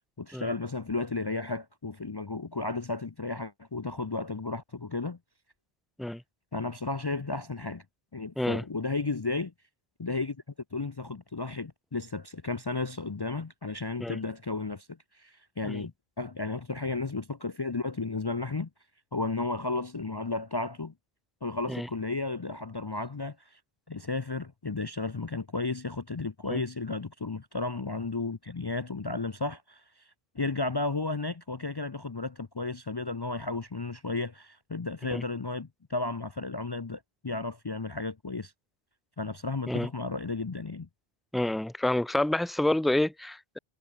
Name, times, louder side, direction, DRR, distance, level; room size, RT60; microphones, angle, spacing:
voice 1, 0.2-5.2 6.5-7.8 8.1-9.5 10.0-10.4 10.7-18.7 19.1-20.9 21.4-23.6 23.9-30.0 30.3-38.5 39.2-40.9, left 3 dB, 30° left, 0.5 m, -33 dB
voice 2, 41.3-43.6, left 1 dB, ahead, 1.0 m, -28 dB
omnidirectional pair, 1.1 m